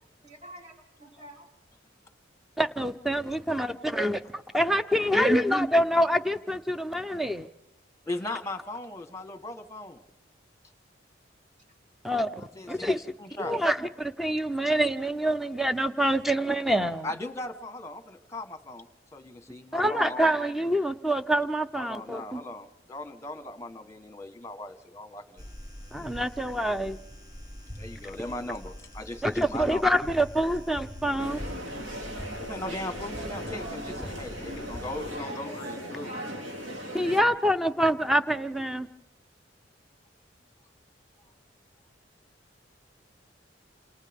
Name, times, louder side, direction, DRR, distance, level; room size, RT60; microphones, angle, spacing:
voice 1, 0.2-1.5 35.1-35.8 36.1-36.3, right 2 dB, 40° right, 0 dB, 3.6 m, -44 dB
voice 2, 2.6-7.5 12.0-13.0 13.4-17.1 19.7-22.4 25.9-27.0 29.2-31.4 36.9-38.9, equal, ahead, 9 dB, 0.7 m, -26 dB
voice 3, 8.1-10.0 12.4-13.6 17.0-18.9 19.1-20.4 21.7-25.5 27.7-29.8 32.4-36.1, left 2 dB, 15° left, 9 dB, 1.3 m, -38 dB
sound 1, 25.4-35.1, equal, 20° right, 1.4 m, -43 dB
sound 2, 31.2-37.2, equal, 80° right, 2.7 m, -38 dB
28.5 x 28.0 x 3.6 m, 0.90 s
head